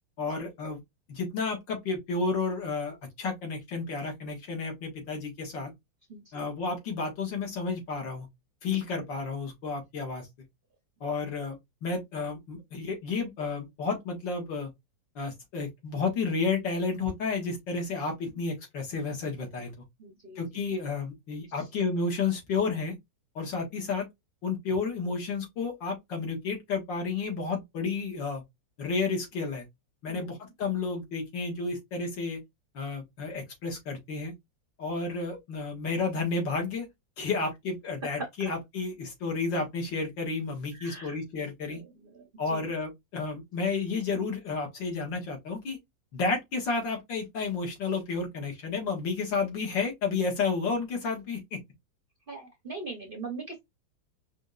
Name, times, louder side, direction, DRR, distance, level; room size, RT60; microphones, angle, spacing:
voice 1, 0.2-0.8 1.1-5.7 6.3-8.3 8.6-10.3 11.0-11.6 11.8-14.7 15.2-19.7 20.4-23.0 23.4-24.0 24.4-28.4 28.8-29.7 30.0-32.4 32.7-34.3 34.8-36.9 37.2-41.8 42.4-45.8 46.1-51.6, left 4 dB, 70° left, 2.2 m, -31 dB
voice 2, 20.0-20.4 21.6-21.7 30.1-30.3 38.0-38.5 40.7-41.2 41.7-42.7 52.3-53.6, right 3 dB, 50° right, 0.6 m, -41 dB
5.0 x 2.6 x 2.4 m
omnidirectional pair, 2.1 m